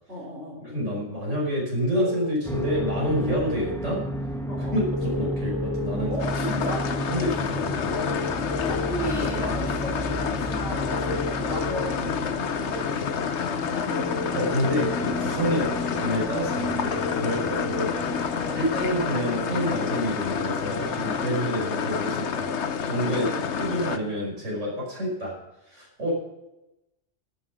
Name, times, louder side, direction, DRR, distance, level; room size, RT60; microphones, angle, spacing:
voice 1, 0.1-0.6 4.5-4.8 6.1-6.8 8.3-14.1 15.6-15.8 18.3-18.6 23.1-23.4, right 1 dB, 60° right, -6 dB, 4.7 m, -36 dB
voice 2, 0.6-4.0 4.6-6.1 6.6-6.7 7.1-8.0 14.3-17.9 18.5-22.5 22.8-25.3 25.7-26.1, equal, 80° right, -3 dB, 5.9 m, -28 dB
sound 1, 2.0-2.9 4.9-5.9 7.9-8.9 10.9-11.9 13.9-14.9 16.9-17.9, left 4 dB, 30° left, 0.6 m, -33 dB
sound 2, 2.4-21.3, equal, ahead, 1.4 m, -33 dB
sound 3, 6.2-24.0, left 6 dB, 70° left, 1.2 m, -29 dB
12.5 x 10.0 x 6.0 m, 0.94 s
omnidirectional pair, 1.2 m